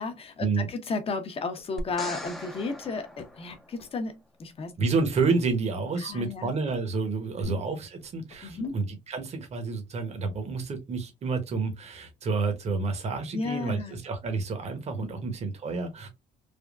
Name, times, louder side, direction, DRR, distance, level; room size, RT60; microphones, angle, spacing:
voice 1, 0.0-4.8 6.0-6.6 7.5-7.6 8.4-8.8 13.3-14.0 15.2-15.3, left 4 dB, 35° left, 0.7 m, -34 dB
sound 1, 1.6-2.4 3.2-3.9 5.1-5.6 6.7-6.9 8.0-8.8, left 5 dB, 90° left, 1.0 m, -50 dB
sound 2, 1.8-4.1 7.4-7.5, left 1 dB, ahead, 0.5 m, -40 dB
voice 2, 4.8-16.1, right 4 dB, 40° right, 0.9 m, -29 dB
3.4 x 2.2 x 2.3 m
cardioid pair, 110°, 17 cm